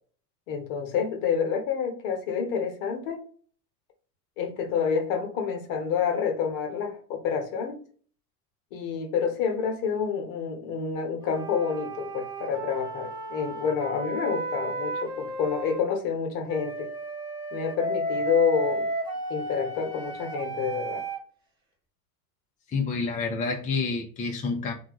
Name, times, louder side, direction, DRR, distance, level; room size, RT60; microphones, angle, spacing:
voice 1, 0.5-3.2 4.4-7.8 8.7-16.9 17.5-18.9 19.3-21.0, left 6 dB, 55° left, 1.0 m, -28 dB
sound 1, 11.2-15.8 16.5-21.2, right 2 dB, 10° right, 1.0 m, -33 dB
voice 2, 22.7-24.7, left 4 dB, 15° left, 0.5 m, -28 dB
2.6 x 2.2 x 2.9 m
hypercardioid pair, 70°, 49 cm